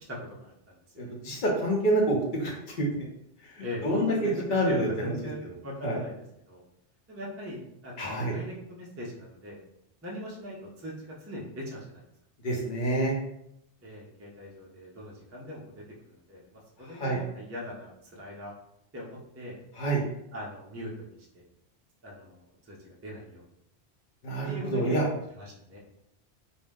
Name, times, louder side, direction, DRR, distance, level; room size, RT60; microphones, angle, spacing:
voice 1, 0.1-0.8 3.6-6.1 6.5-6.6 7.1-9.6 10.0-12.0 13.8-18.5 18.9-19.6 20.3-21.0 21.3-21.4 22.0-23.5 24.5-25.8, left 1 dB, 20° right, -4 dB, 0.3 m, -40 dB
voice 2, 1.0-2.9 3.5-5.1 5.8-5.9 8.0-8.3 12.4-13.1 16.9-17.2 19.8-20.0 24.2-25.1, right 1 dB, 50° left, -1 dB, 0.8 m, -27 dB
2.7 x 2.0 x 3.4 m, 0.78 s
omnidirectional pair, 1.2 m